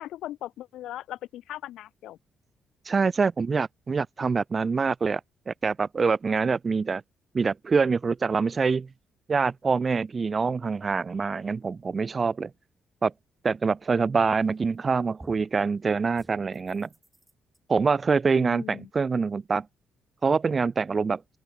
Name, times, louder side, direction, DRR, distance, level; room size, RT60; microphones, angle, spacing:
voice 1, 0.0-2.2 18.3-18.9, left 13 dB, 85° left, 0.5 m, -39 dB
voice 2, 2.8-5.2 5.5-7.0 7.3-8.9 9.3-12.5 13.0-13.1 13.4-16.9 17.7-19.7 20.2-21.2, right 5 dB, 25° right, 0.6 m, -25 dB
sound 1, 14.4-14.8 15.2-15.6 16.1-17.6, right 1 dB, 5° right, 6.0 m, -52 dB
open air
cardioid pair, 170°, 0 cm